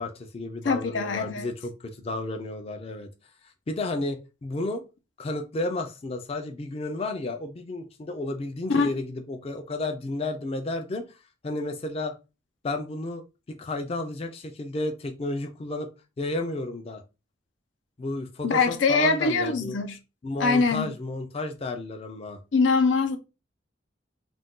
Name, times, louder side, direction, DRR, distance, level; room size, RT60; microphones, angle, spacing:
voice 1, 0.0-3.1 3.7-4.8 5.2-11.2 11.4-12.1 12.6-13.2 13.6-15.9 16.2-17.0 18.0-19.8 20.2-22.4, left 2 dB, 30° left, 0.4 m, -32 dB
voice 2, 0.6-1.5 8.7-8.9 18.4-20.0 20.4-20.9 22.5-23.2, left 4 dB, 85° left, 0.6 m, -23 dB
2.5 x 2.2 x 3.6 m
head